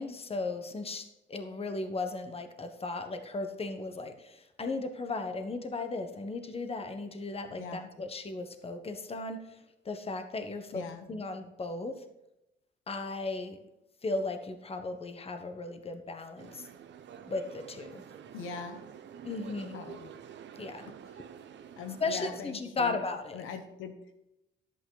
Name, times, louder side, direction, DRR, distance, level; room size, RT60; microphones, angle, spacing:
voice 1, 0.0-9.6 9.8-12.0 12.9-13.6 14.0-16.7 17.2-18.0 19.2-19.8 20.6-20.8 22.0-23.4, left 3 dB, 30° left, 7 dB, 1.2 m, -36 dB
voice 2, 7.6-7.9 10.7-11.1 18.3-18.9 19.7-20.1 20.8-21.0 21.8-23.0 23.3-24.0, left 6 dB, 85° left, 6 dB, 1.1 m, -41 dB
sound 1, 16.4-22.4, right 8 dB, 65° right, 0.8 m, -48 dB
10.5 x 8.5 x 4.1 m, 0.89 s
cardioid pair, 90°, 20 cm